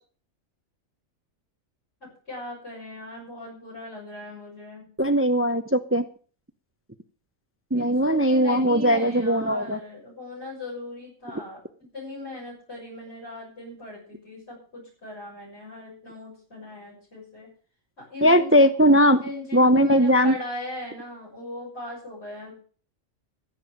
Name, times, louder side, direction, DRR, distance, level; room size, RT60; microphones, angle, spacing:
voice 1, 2.0-4.9 7.7-11.6 11.9-17.5 18.0-18.7 19.2-22.5, left 1 dB, 50° left, -7 dB, 6.8 m, -38 dB
voice 2, 5.0-6.0 7.7-9.8 18.2-19.2 19.5-20.3, equal, 15° right, 10 dB, 0.5 m, -19 dB
15.5 x 7.7 x 6.3 m, 0.43 s
omnidirectional pair, 1.4 m